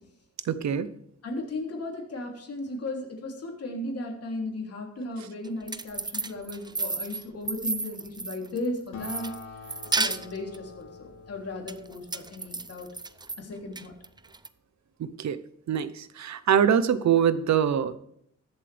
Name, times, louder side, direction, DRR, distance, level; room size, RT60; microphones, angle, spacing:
voice 1, 0.4-0.9 15.0-15.4 15.7-18.0, right 8 dB, 70° right, 14 dB, 0.8 m, -24 dB
voice 2, 1.2-9.3 10.0-12.9 13.4-13.9, left 2 dB, 55° left, 0 dB, 3.2 m, -36 dB
sound 1, 5.4-8.7 9.0-10.6 11.7-13.4 13.8-14.5, right 3 dB, 15° right, 0.5 m, -32 dB
Acoustic guitar, 8.9-13.8, left 3 dB, 85° left, 1.8 m, -46 dB
21.0 x 7.5 x 3.4 m, 0.69 s
wide cardioid pair, 130°, 29 cm